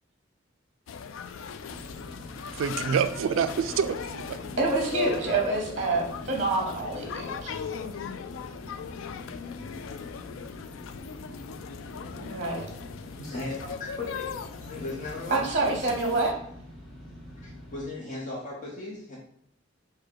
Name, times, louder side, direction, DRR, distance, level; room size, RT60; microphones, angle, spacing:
sound 1, 0.9-16.3, left 6 dB, 90° left, 0.3 m, -38 dB
sound 2, 1.7-17.8, left 1 dB, ahead, 1.1 m, -46 dB
voice 1, 2.5-4.4, right 7 dB, 80° right, 0.3 m, -27 dB
voice 2, 4.6-7.5 12.2-12.6 15.3-16.3, right 3 dB, 40° right, 0.7 m, -27 dB
voice 3, 13.2-14.3 14.6-15.4 17.4-19.2, left 2 dB, 40° left, 0.8 m, -37 dB
4.8 x 2.2 x 4.5 m
head